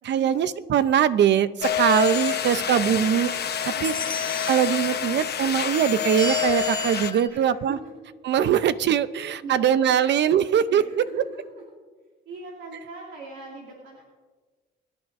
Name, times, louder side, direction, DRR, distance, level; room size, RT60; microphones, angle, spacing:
voice 1, 0.0-3.3 3.6-3.9 4.5-7.8 8.2-11.0, right 9 dB, 60° right, 15 dB, 0.6 m, -22 dB
sound 1, 1.6-7.1, left 9 dB, 55° left, 1.0 m, -27 dB
sound 2, 1.9-3.4 3.8-4.7 6.2-7.3, equal, 20° left, 1.0 m, -35 dB
voice 2, 3.7-4.2 7.3-8.0 9.4-10.1 10.4-11.6 12.3-14.0, right 3 dB, 85° right, -3 dB, 2.4 m, -42 dB
22.0 x 10.5 x 2.6 m, 1.4 s
cardioid pair, 90°, 20 cm